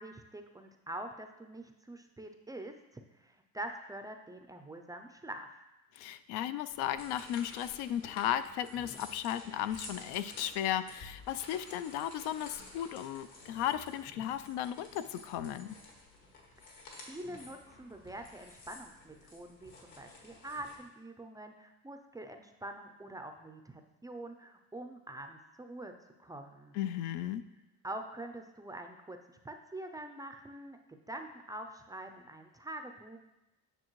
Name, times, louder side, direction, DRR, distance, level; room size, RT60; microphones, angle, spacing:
voice 1, 0.0-2.7 3.2-5.5 16.6-25.9 26.2-26.7 27.8-33.2, right 1 dB, 10° right, 5 dB, 0.3 m, -45 dB
voice 2, 5.9-15.8 26.7-27.4, left 11 dB, 90° left, 12 dB, 0.5 m, -35 dB
sound 1, 6.7-20.7, left 2 dB, 70° left, 1.9 m, -52 dB
8.9 x 6.6 x 3.0 m, 0.98 s
cardioid pair, 130°, 38 cm